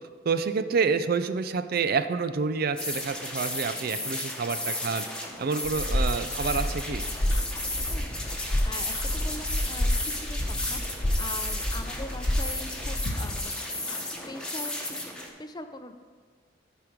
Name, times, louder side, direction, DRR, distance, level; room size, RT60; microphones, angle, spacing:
voice 1, 0.3-5.0 5.4-7.0, right 5 dB, 50° right, 10 dB, 0.4 m, -28 dB
sound 1, 1.8-14.0, left 2 dB, 80° left, 0.9 m, -46 dB
sound 2, 2.8-15.3, left 1 dB, 5° left, 1.2 m, -34 dB
sound 3, 5.6-13.4, left 1 dB, 40° left, 1.2 m, -29 dB
voice 2, 5.9-6.4 7.9-8.2 8.6-15.1 15.4-16.0, left 2 dB, 20° left, 7 dB, 0.6 m, -42 dB
13.5 x 5.1 x 4.6 m, 1.5 s
head